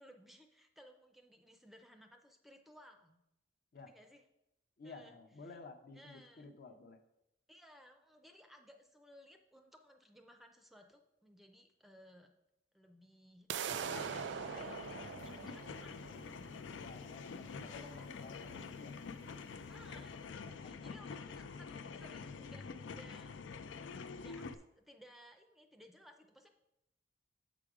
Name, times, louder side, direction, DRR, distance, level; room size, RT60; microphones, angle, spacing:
voice 1, 0.0-3.2 3.9-4.2 4.8-5.2 5.4-5.5 5.9-6.5 7.5-12.3 12.7-16.3 17.8-18.1 19.7-20.3 20.6-23.3 24.0-26.5, equal, ahead, 5 dB, 0.5 m, -60 dB
voice 2, 4.8-7.0 16.7-19.0 19.9-20.7, left 3 dB, 55° left, 6 dB, 0.7 m, -53 dB
sound 1, 13.5-19.5, right 7 dB, 70° right, 0.3 m, -44 dB
sound 2, 13.6-24.5, left 5 dB, 85° left, 0.4 m, -47 dB
7.1 x 5.0 x 4.8 m, 0.86 s
head